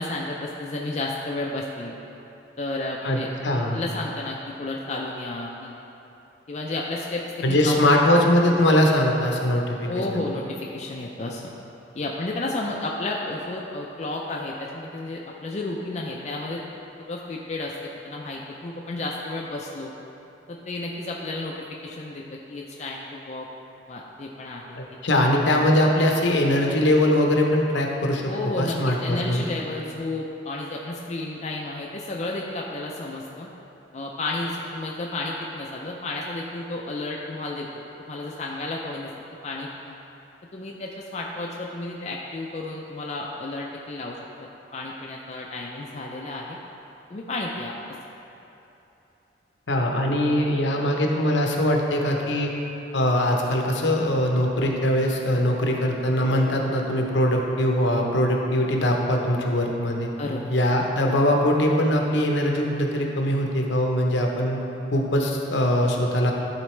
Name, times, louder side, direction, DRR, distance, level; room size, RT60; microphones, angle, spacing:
voice 1, 0.0-1.9 2.6-3.3 3.7-5.7 6.5-7.2 7.5-7.8 9.9-11.4 11.9-16.6 17.0-19.9 20.5-21.5 21.8-23.5 23.9-24.8 28.2-33.5 33.9-37.7 38.1-40.0 40.5-44.2 44.7-46.6 47.1-47.7 60.2-60.6, left 2 dB, 35° left, -2 dB, 0.4 m, -32 dB
voice 2, 3.0-3.8 7.4-10.2 25.0-28.3 28.6-29.5 49.7-52.5 52.9-60.1 60.5-64.6 64.9-66.3, left 1 dB, 70° left, 1 dB, 0.8 m, -22 dB
12.0 x 3.9 x 3.2 m, 3.0 s
head